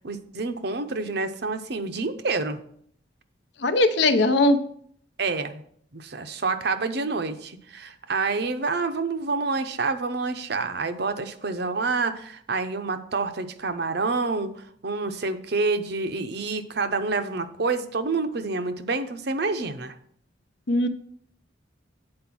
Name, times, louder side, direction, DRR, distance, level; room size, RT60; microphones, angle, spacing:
voice 1, 0.0-2.6 5.2-5.6 5.9-20.0, right 3 dB, 55° right, 9 dB, 0.7 m, -28 dB
voice 2, 3.6-4.6 20.7-20.9, left 2 dB, 60° left, 9 dB, 0.8 m, -19 dB
8.7 x 4.5 x 6.1 m, 0.64 s
head